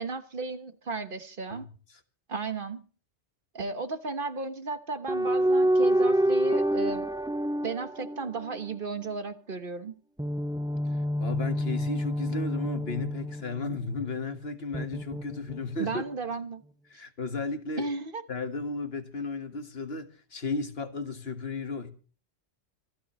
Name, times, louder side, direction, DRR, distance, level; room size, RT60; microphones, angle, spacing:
voice 1, 0.0-1.6 2.3-2.8 3.5-7.1 7.6-9.9 15.8-16.6 17.8-18.2, right 4 dB, 50° right, 1.4 m, -34 dB
sound 1, 5.1-8.8 10.2-13.9 14.7-16.0, equal, 5° right, 0.7 m, -27 dB
voice 2, 11.2-16.0 16.9-17.9 18.3-21.9, left 3 dB, 60° left, 1.9 m, -34 dB
26.5 x 11.5 x 3.1 m
omnidirectional pair, 1.1 m